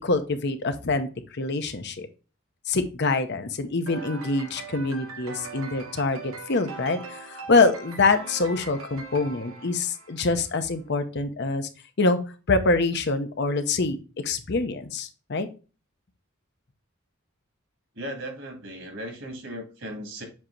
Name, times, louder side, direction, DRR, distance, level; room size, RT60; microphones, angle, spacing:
voice 1, 0.0-2.1 2.7-11.7 12.0-12.2 12.5-14.0 14.2-15.5, left 3 dB, 50° left, 8 dB, 0.7 m, -25 dB
sound 1, 3.9-10.5, right 4 dB, 80° right, 1.1 m, -41 dB
voice 2, 18.0-20.2, equal, 60° right, 3 dB, 2.0 m, -37 dB
7.4 x 2.9 x 4.4 m, 0.33 s
head